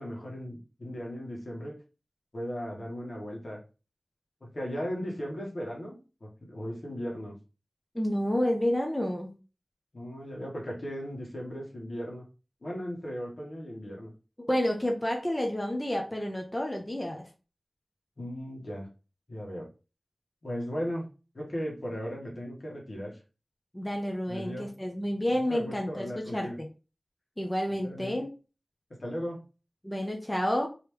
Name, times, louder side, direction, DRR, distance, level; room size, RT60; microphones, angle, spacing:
voice 1, 0.0-1.8 2.3-3.6 4.4-7.3 9.9-12.2 12.6-14.1 18.2-18.9 19.3-19.7 20.4-23.2 24.3-24.7 25.3-26.6 27.8-28.2 29.0-29.5, equal, 70° left, -2 dB, 1.5 m, -37 dB
voice 2, 7.9-9.3 14.4-17.3 23.7-26.7 27.4-28.3 29.8-30.7, left 1 dB, 15° left, 1 dB, 0.8 m, -30 dB
3.3 x 3.1 x 3.1 m, 0.33 s
wide cardioid pair, 50°, 0 cm